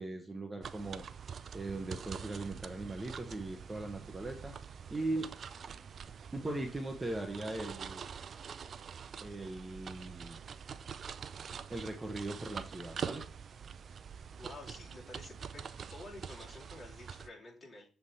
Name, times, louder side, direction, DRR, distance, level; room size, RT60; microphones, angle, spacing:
voice 1, 0.0-4.6 4.9-5.3 5.7-5.8 6.3-8.1 9.2-10.4 11.7-13.3, right 2 dB, 15° right, 3 dB, 0.9 m, -39 dB
sound 1, 0.6-17.3, right 7 dB, 50° right, 0.4 m, -45 dB
voice 2, 14.4-15.6 15.9-17.9, left 2 dB, 30° left, -4 dB, 3.2 m, -50 dB
7.3 x 3.5 x 4.1 m, 0.39 s
cardioid pair, 90°, 0 cm